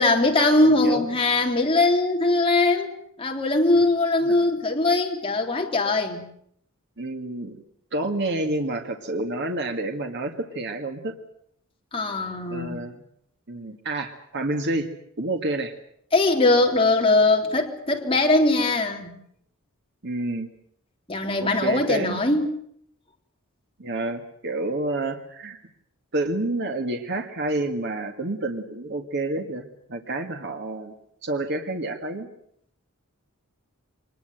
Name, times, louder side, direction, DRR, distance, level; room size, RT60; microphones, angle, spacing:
voice 1, 0.0-2.9 3.2-6.2 11.9-12.8 16.1-19.1 21.1-22.5, left 2 dB, 25° left, 1 dB, 3.5 m, -21 dB
voice 2, 0.6-1.1 4.2-4.3 7.0-7.6 7.9-11.1 12.5-12.9 13.5-14.9 15.2-15.7 20.0-20.5 21.4-22.2 23.8-25.6 26.1-30.9 31.2-32.3, right 2 dB, 55° right, 5 dB, 1.9 m, -29 dB
24.5 x 20.5 x 7.9 m, 0.70 s
head